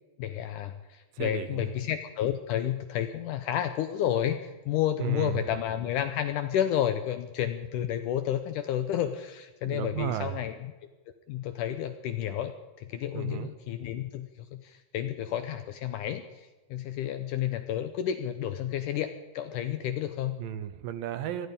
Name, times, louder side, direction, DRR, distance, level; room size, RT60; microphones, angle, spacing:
voice 1, 0.2-10.7 11.3-20.4, left 10 dB, 75° left, 9 dB, 1.9 m, -31 dB
voice 2, 1.1-1.7 5.0-5.4 9.6-10.4 13.1-13.5 20.4-21.5, right 11 dB, 75° right, 11 dB, 2.4 m, -34 dB
19.0 x 13.0 x 5.3 m, 1.2 s
omnidirectional pair, 4.3 m